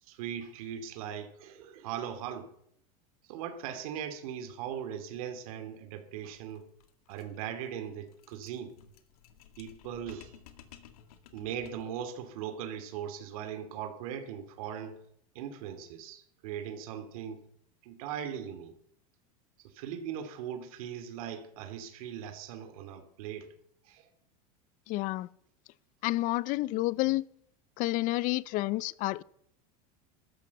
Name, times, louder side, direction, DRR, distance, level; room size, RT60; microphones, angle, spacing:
voice 1, 0.0-2.5 3.3-6.7 7.1-8.7 9.6-10.4 11.3-15.0 15.3-17.5 17.8-18.7 19.6-23.5 23.8-24.1, right 9 dB, 70° right, 2.5 m, -39 dB
sound 1, 6.3-12.0, left 9 dB, 80° left, 2.1 m, -56 dB
voice 2, 24.9-25.3 26.0-27.2 27.8-29.2, left 19 dB, 45° left, 0.6 m, -29 dB
13.5 x 12.5 x 7.0 m
supercardioid pair, 135°, 19 cm